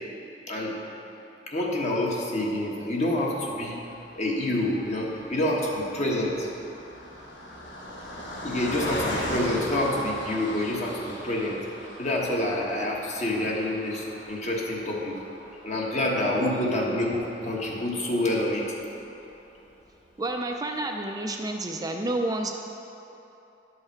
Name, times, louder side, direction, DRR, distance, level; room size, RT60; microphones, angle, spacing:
voice 1, 1.5-3.8 4.2-6.5 8.4-11.6 12.0-15.1 15.6-18.7, left 1 dB, 40° left, -2 dB, 1.2 m, -27 dB
Car passing by, 3.6-19.0 19.6-19.7 19.9-20.1, left 1 dB, 85° left, 1.1 m, -39 dB
voice 2, 20.2-22.5, right 2 dB, 20° right, 2 dB, 0.4 m, -29 dB
11.0 x 5.5 x 4.6 m, 2.9 s
head